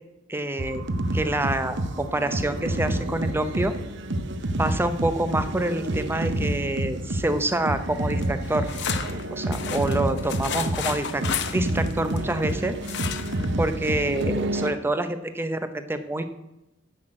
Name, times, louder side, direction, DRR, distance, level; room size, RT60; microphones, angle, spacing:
voice 1, 0.3-0.8 1.1-3.7 4.6-8.7 9.3-12.8 13.6-16.2, right 1 dB, 10° right, 9 dB, 0.6 m, -27 dB
sound 1, 0.6-14.7, right 1 dB, 55° right, 0.8 m, -29 dB
sound 2, 8.2-12.5 12.8-13.5 13.8-13.9 14.2-14.3, left 7 dB, 55° left, 0.8 m, -32 dB
10.5 x 5.9 x 7.7 m, 0.92 s
head